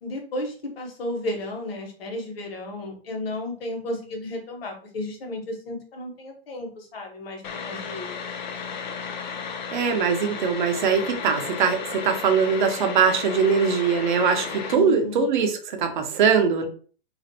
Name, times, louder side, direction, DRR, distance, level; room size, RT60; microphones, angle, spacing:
voice 1, 0.0-8.4 14.7-15.3, left 1 dB, 70° left, 1 dB, 1.1 m, -33 dB
sound 1, 7.4-14.7, left 6 dB, 50° left, 0.4 m, -34 dB
voice 2, 9.7-16.7, right 6 dB, 50° right, 5 dB, 0.6 m, -22 dB
2.5 x 2.1 x 2.6 m, 0.42 s
hypercardioid pair, 165°, 31 cm